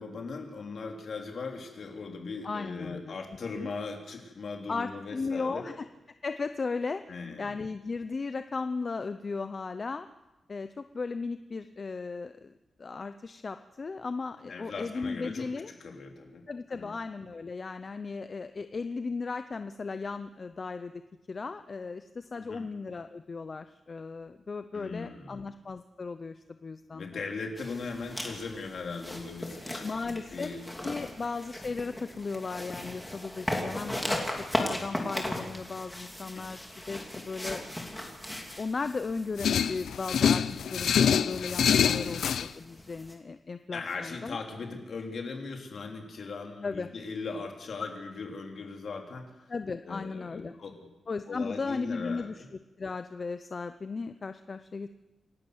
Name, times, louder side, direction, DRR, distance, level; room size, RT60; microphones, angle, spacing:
voice 1, 0.0-5.6 7.1-7.6 14.5-15.5 15.8-16.4 16.7-16.9 22.4-22.6 24.7-25.4 26.9-31.1 36.3-36.4 41.9-42.2 43.7-49.5 49.8-50.7 51.3-52.5, left 4 dB, 55° left, 2 dB, 3.4 m, -39 dB
voice 2, 2.4-3.2 3.5-3.7 4.7-5.9 6.2-7.0 7.4-10.1 10.5-12.5 12.8-15.7 16.5-21.0 21.3-27.2 29.8-30.5 30.8-38.1 38.6-44.4 46.6-46.9 49.5-50.5 51.1-52.4 52.8-54.9, left 4 dB, 35° left, 10 dB, 0.6 m, -36 dB
sound 1, 27.6-43.1, left 1 dB, 5° left, 2.8 m, -38 dB
sound 2, 39.4-42.5, left 7 dB, 85° left, 0.7 m, -25 dB
27.5 x 12.0 x 7.9 m, 1.1 s
wide cardioid pair, 160°, 0 cm